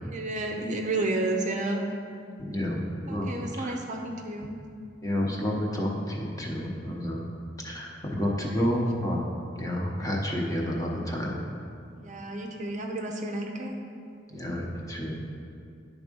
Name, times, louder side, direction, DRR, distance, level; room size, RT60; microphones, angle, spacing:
voice 1, 0.0-1.8 3.1-4.5 8.6-8.7 9.0-9.1 11.9-13.7, right 2 dB, 40° right, 2 dB, 0.6 m, -31 dB
voice 2, 2.4-2.8 3.1-3.3 3.6-3.7 5.0-7.3 7.6-9.2 9.6-11.4 14.3-15.2, equal, 20° left, -2 dB, 1.0 m, -30 dB
10.5 x 3.6 x 5.3 m, 2.3 s
head